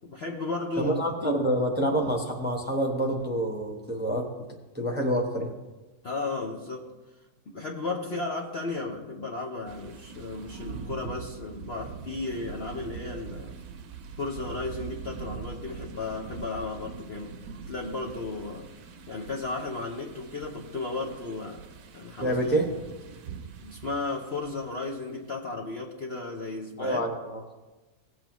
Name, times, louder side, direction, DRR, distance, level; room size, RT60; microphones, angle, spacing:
voice 1, 0.0-1.0 1.2-1.4 6.0-6.9 7.5-13.5 14.2-17.4 17.7-18.7 19.1-21.7 21.9-22.4 23.6-27.0, left 3 dB, 45° left, -1 dB, 0.9 m, -34 dB
voice 2, 0.8-4.3 4.7-5.5 22.2-22.7 26.8-27.4, right 1 dB, 5° right, 0 dB, 0.9 m, -27 dB
sound 1, 9.7-25.0, right 7 dB, 65° right, 1.2 m, -43 dB
17.5 x 7.7 x 3.1 m, 1.2 s
omnidirectional pair, 1.9 m